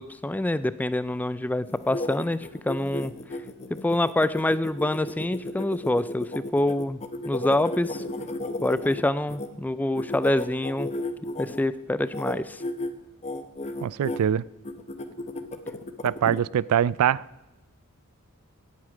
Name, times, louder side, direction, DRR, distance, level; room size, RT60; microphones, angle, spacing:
voice 1, 0.0-3.1 3.7-7.0 7.2-8.0 8.6-10.9 11.4-12.6 16.2-16.4, left 1 dB, 5° left, 15 dB, 0.3 m, -26 dB
sound 1, 1.7-9.5 9.9-11.6 12.0-12.3 12.6-12.9 13.2-14.2 14.6-16.4, left 2 dB, 30° left, 0.8 m, -33 dB
voice 2, 13.8-14.4 16.0-17.2, right 9 dB, 75° right, 22 dB, 0.3 m, -23 dB
17.0 x 8.5 x 4.9 m, 1.0 s
head